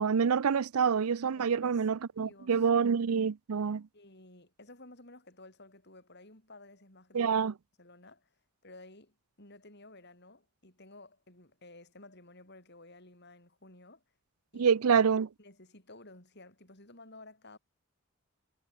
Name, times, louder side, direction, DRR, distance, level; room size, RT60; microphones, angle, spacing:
voice 1, 0.0-3.8 7.1-7.5 14.5-15.3, right 6 dB, 85° right, 0.5 m, -27 dB
voice 2, 1.4-1.8 2.2-2.9 3.9-7.4 7.8-8.3 8.6-14.0 14.5-14.7 15.4-17.6, left 2 dB, 50° left, 7.1 m, -54 dB
head